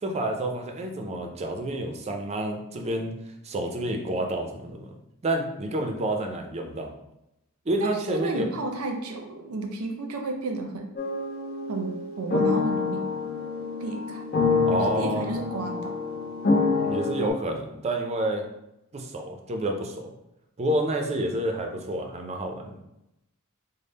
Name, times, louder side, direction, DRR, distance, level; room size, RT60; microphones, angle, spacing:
voice 1, 0.0-3.1 3.4-4.9 5.2-6.9 7.7-8.5 14.6-15.3 16.9-18.4 18.9-20.1 20.6-22.8, right 1 dB, 30° right, 3 dB, 0.5 m, -29 dB
voice 2, 7.8-10.9 11.7-11.9 12.2-13.1 13.8-14.2 14.7-15.9, right 2 dB, 80° right, 4 dB, 0.6 m, -32 dB
sound 1, 11.0-17.3, left 4 dB, 45° left, 0.6 m, -27 dB
3.5 x 2.1 x 4.0 m, 0.87 s
head